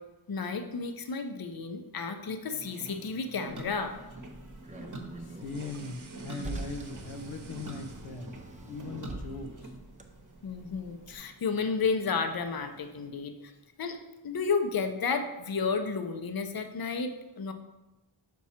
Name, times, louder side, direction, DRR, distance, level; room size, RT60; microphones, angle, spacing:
voice 1, 0.3-3.9 10.4-13.5 13.8-14.0 14.2-17.1 17.4-17.5, left 5 dB, 45° left, 7 dB, 0.6 m, -32 dB
sound 1, 2.4-13.1, right 2 dB, 40° right, 1.0 m, -47 dB
Car, 3.5-11.2, right 2 dB, 15° right, 0.5 m, -45 dB
voice 2, 5.2-8.3 8.6-9.7, left 3 dB, 90° left, 6 dB, 0.7 m, -40 dB
sound 2, 5.4-8.6 8.9-9.6, right 4 dB, 75° right, 0.8 m, -54 dB
6.1 x 4.6 x 4.2 m, 1.0 s
wide cardioid pair, 65°, 49 cm